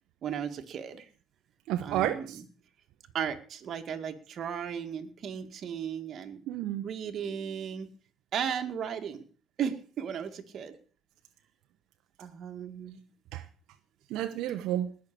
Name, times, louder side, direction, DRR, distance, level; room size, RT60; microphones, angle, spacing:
voice 1, 0.2-1.1 1.8-2.5 3.1-6.4 6.8-7.9 8.3-9.2 9.6-10.8 12.2-13.0, right 8 dB, 45° right, 2.1 m, -35 dB
voice 2, 1.7-2.4 6.5-6.9 13.3-13.4 14.1-14.9, right 12 dB, 75° right, 1.0 m, -31 dB
19.5 x 6.7 x 6.9 m
cardioid pair, 120°, 0 cm